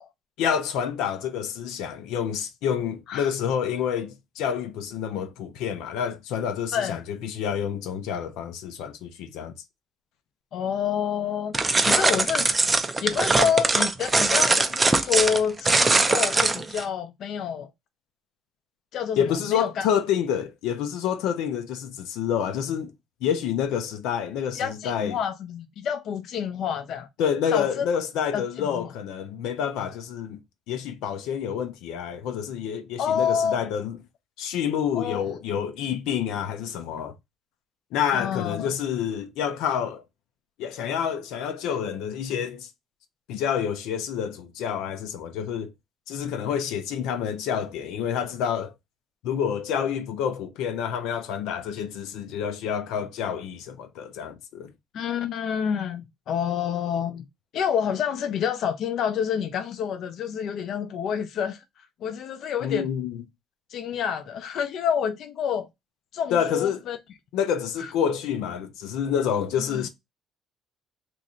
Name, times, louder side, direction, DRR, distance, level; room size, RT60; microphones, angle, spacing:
voice 1, 0.4-9.5 19.2-22.9 23.2-25.2 27.2-30.4 30.7-34.0 34.4-37.1 37.9-40.0 40.6-42.7 43.3-45.7 46.1-48.7 49.2-54.7 62.6-63.2 66.3-66.8 67.3-69.9, left 8 dB, 90° left, 0.6 m, -28 dB
voice 2, 10.5-11.5 11.8-12.5 13.0-17.7 18.9-19.9 24.6-27.1 27.5-27.8 28.3-28.9 33.0-33.6 35.0-35.3 38.1-38.7 54.9-57.2 57.5-61.6 62.0-62.9 63.7-65.7 66.1-67.0 67.8-67.9 69.7-69.9, left 8 dB, 50° left, 0.5 m, -28 dB
sound 1, 11.5-16.8, right 3 dB, 15° right, 0.4 m, -21 dB
3.1 x 2.6 x 3.7 m
cardioid pair, 170°, 0 cm